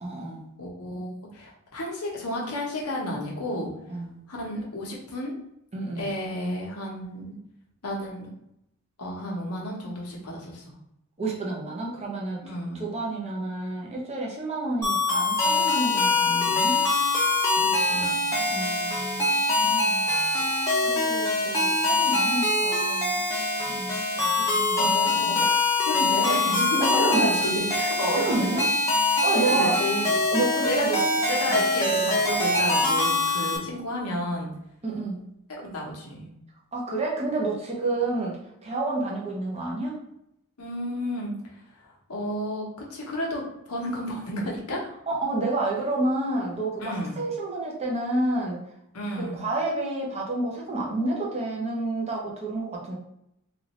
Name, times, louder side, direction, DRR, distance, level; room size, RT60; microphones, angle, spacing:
voice 1, 0.0-0.5 3.9-4.2 5.7-6.2 11.2-12.4 12.7-16.8 18.5-19.3 19.6-20.1 20.8-23.2 23.7-24.9 25.3-25.5 26.8-27.3 28.0-28.6 29.2-29.8 30.3-31.0 31.5-31.6 34.8-35.2 36.7-39.9 45.1-48.6 49.1-53.0, right 2 dB, 30° right, -3 dB, 0.8 m, -29 dB
voice 2, 0.6-3.7 4.3-5.3 6.0-7.3 7.8-8.3 9.0-10.6 12.4-12.9 17.6-18.2 24.7-25.5 25.9-28.5 29.3-30.1 30.6-30.9 31.3-34.5 35.5-36.3 40.6-41.3 41.8-44.9 46.8-47.2 48.9-49.4, left 1 dB, 85° left, -2 dB, 1.0 m, -31 dB
sound 1, 14.8-33.6, left 2 dB, 15° left, 0.8 m, -24 dB
3.4 x 2.5 x 3.0 m, 0.79 s
head